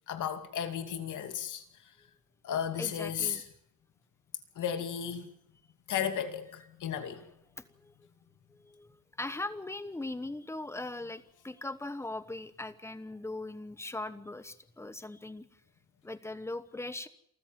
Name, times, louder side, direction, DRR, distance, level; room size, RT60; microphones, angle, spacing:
voice 1, 0.1-1.6 2.4-3.4 4.6-5.3 5.9-7.2, left 8 dB, 60° left, 2.6 m, -34 dB
voice 2, 2.8-3.4 7.1-7.2 7.6-7.9 8.5-15.5 16.0-17.1, left 2 dB, 10° left, 1.1 m, -40 dB
28.5 x 14.0 x 7.6 m
cardioid pair, 155°, 35 cm